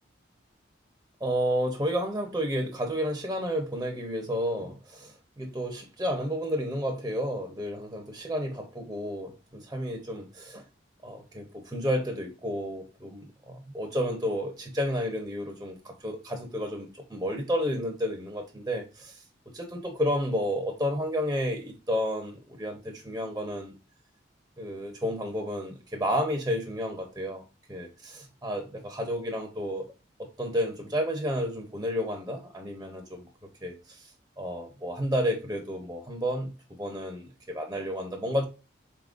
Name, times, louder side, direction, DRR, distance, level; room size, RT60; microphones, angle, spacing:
voice 1, 1.2-10.6 11.0-19.2 19.5-23.7 24.6-27.4 27.7-29.9 30.2-33.3 33.6-34.1 34.4-36.5 36.8-38.4, equal, 15° right, 0.6 m, -31 dB
4.1 x 3.7 x 2.4 m
head